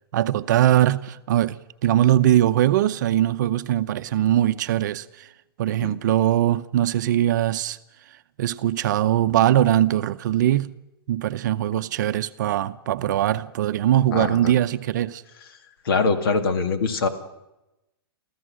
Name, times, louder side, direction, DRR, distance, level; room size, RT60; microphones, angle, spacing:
voice 1, 0.1-5.3 5.6-7.8 8.4-10.7 11.1-15.2, right 12 dB, 50° right, 0.7 m, -21 dB
voice 2, 14.1-14.5 15.9-17.1, left 4 dB, 65° left, 2.2 m, -23 dB
28.0 x 14.5 x 6.4 m
hypercardioid pair, 165°, 13 cm